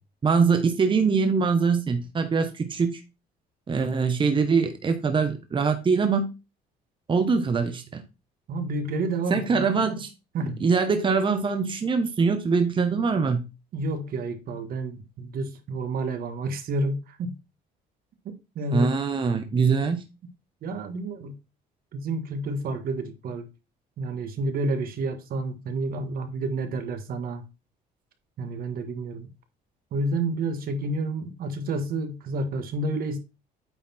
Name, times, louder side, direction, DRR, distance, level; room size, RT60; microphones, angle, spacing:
voice 1, 0.2-3.0 3.7-6.3 7.1-8.0 9.3-10.1 10.4-13.5 18.7-20.0, right 5 dB, 30° right, 1.2 m, -23 dB
voice 2, 8.5-9.6 10.3-10.6 13.7-17.4 18.5-19.0 20.6-21.4 21.9-23.5 24.0-27.5 28.4-29.3 29.9-33.2, right 2 dB, 60° right, 1.7 m, -29 dB
9.0 x 4.2 x 4.4 m
cardioid pair, 110°, 17 cm